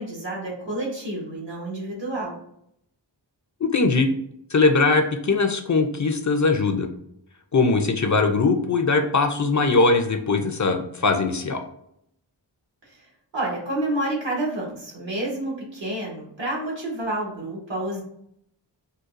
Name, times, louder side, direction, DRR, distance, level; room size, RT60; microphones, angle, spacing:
voice 1, 0.0-2.4 12.9-13.1 13.3-18.0, right 1 dB, 75° right, -3 dB, 1.3 m, -29 dB
voice 2, 3.6-4.1 4.5-6.9 7.5-11.6, left 3 dB, 40° left, 5 dB, 0.4 m, -21 dB
3.9 x 2.3 x 2.5 m, 0.74 s
wide cardioid pair, 55°, 45 cm